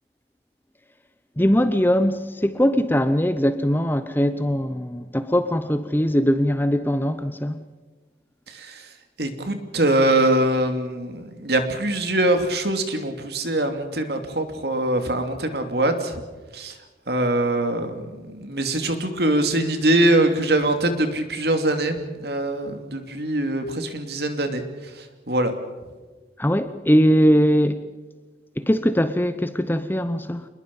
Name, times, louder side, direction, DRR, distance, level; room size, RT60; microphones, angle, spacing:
voice 1, 1.4-7.6 26.4-27.8 28.6-30.5, equal, 10° left, 0.8 m, -21 dB
voice 2, 8.5-8.9 9.2-16.2 16.5-16.7 17.1-24.6 24.9-25.5, right 1 dB, 60° right, 2.8 m, -23 dB
28.0 x 21.0 x 5.5 m
head